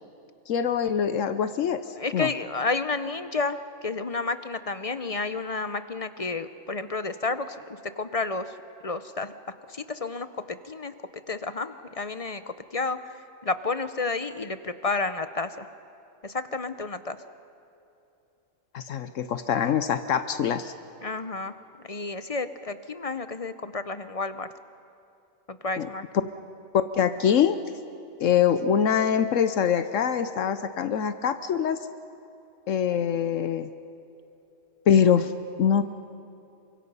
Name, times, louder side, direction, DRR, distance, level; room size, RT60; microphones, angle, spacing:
voice 1, 0.5-1.8 2.1-2.3 18.7-20.7 25.8-25.9 26.7-27.6 28.2-31.8 32.7-33.7 34.9-35.3 35.6-35.8, left 8 dB, 75° left, 11 dB, 1.1 m, -23 dB
voice 2, 2.0-8.6 8.8-9.3 9.7-10.9 11.3-13.0 13.4-15.7 16.2-17.2 21.0-21.6 21.8-24.5 25.5-26.0, left 3 dB, 35° left, 11 dB, 0.7 m, -31 dB
28.0 x 24.5 x 5.6 m, 2.8 s
omnidirectional pair, 1.3 m